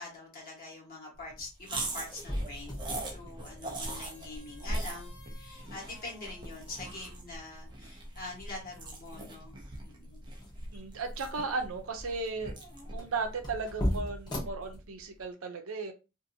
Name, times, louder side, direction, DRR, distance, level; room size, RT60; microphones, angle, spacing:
voice 1, 0.0-2.8 3.1-9.5 9.8-10.3, left 2 dB, 45° left, -2 dB, 1.3 m, -44 dB
sound 1, 1.1-15.3, left 1 dB, 20° left, 0.9 m, -41 dB
sound 2, 1.6-14.1, right 1 dB, 20° right, 0.6 m, -41 dB
voice 2, 10.7-12.5 12.9-15.9, right 4 dB, 75° right, 5 dB, 0.6 m, -35 dB
2.7 x 2.5 x 2.6 m, 0.29 s
head